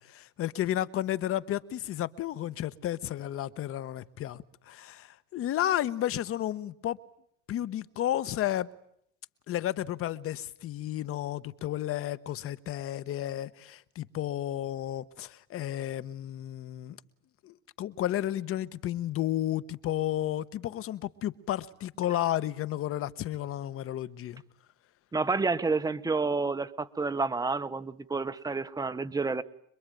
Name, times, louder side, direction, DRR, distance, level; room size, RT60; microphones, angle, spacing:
voice 1, 0.0-7.0 7.5-8.7 9.5-17.0 17.4-24.4, left 12 dB, 40° left, 1.1 m, -32 dB
voice 2, 25.1-29.4, right 4 dB, 10° right, 1.1 m, -29 dB
26.5 x 22.0 x 9.2 m
cardioid pair, 150°, 36 cm